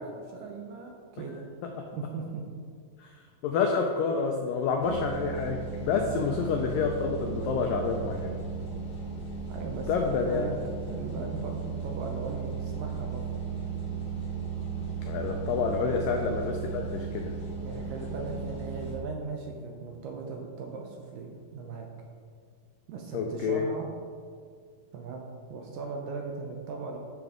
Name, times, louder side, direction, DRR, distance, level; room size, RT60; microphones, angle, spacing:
voice 1, 0.0-1.5 1.9-2.4 6.1-6.4 9.5-10.5 10.9-13.3 15.6-16.0 17.6-21.9 22.9-23.9 24.9-27.0, right 4 dB, 75° right, 1 dB, 2.0 m, -38 dB
voice 2, 3.4-8.4 9.9-10.5 15.0-17.3 23.1-23.6, left 5 dB, 90° left, 3 dB, 1.9 m, -28 dB
sound 1, 4.8-19.0, right 5 dB, 70° left, 0.9 m, -36 dB
12.0 x 6.1 x 3.6 m, 2.1 s
omnidirectional pair, 4.6 m